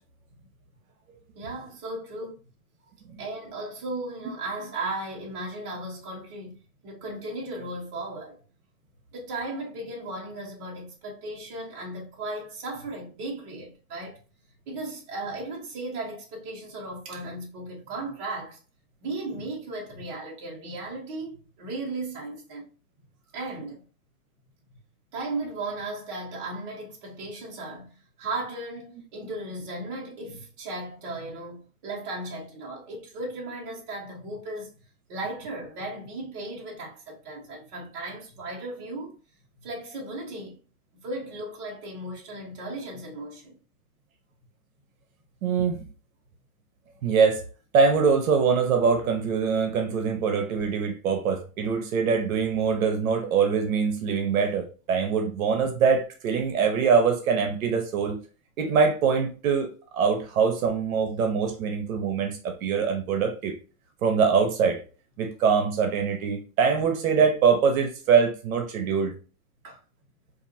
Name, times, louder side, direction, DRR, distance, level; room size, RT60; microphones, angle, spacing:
voice 1, 1.3-2.4 3.1-6.6 6.8-8.4 9.1-14.2 14.7-18.6 19.0-22.6 23.3-23.8 25.1-34.7 35.1-39.2 39.6-40.6 41.0-43.6 69.6-69.8, right 2 dB, 25° right, 1.2 m, -36 dB
voice 2, 45.4-45.9 47.0-47.4 47.7-58.2 58.6-63.6 64.0-64.8 65.2-69.1, right 6 dB, 70° right, 0.9 m, -23 dB
4.6 x 2.6 x 2.6 m
supercardioid pair, 170°, 44 cm